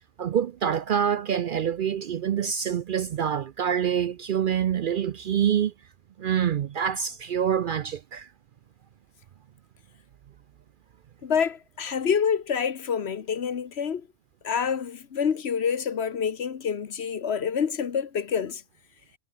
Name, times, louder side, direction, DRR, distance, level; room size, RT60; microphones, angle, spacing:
voice 1, 0.2-5.7 6.2-8.3, right 8 dB, 60° right, 0.6 m, -26 dB
voice 2, 11.2-14.1 14.4-18.6, left 7 dB, 65° left, 1.3 m, -27 dB
omnidirectional pair, 1.2 m